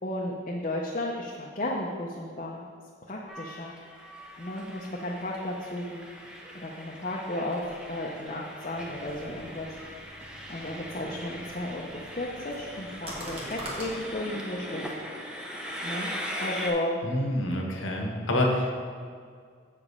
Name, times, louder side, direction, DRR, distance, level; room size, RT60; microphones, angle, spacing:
voice 1, 0.0-2.7 3.1-3.7 4.4-6.1 6.5-9.7 10.1-14.9 15.8-16.1 16.4-17.0, left 1 dB, 40° left, -3 dB, 0.7 m, -34 dB
Train, 3.3-16.7, equal, 5° right, 0.7 m, -40 dB
sound 1, 8.7-14.0, right 1 dB, 30° right, 1.4 m, -44 dB
voice 2, 17.0-18.7, left 1 dB, 90° left, 0 dB, 1.3 m, -27 dB
7.7 x 5.0 x 5.4 m, 2.1 s
head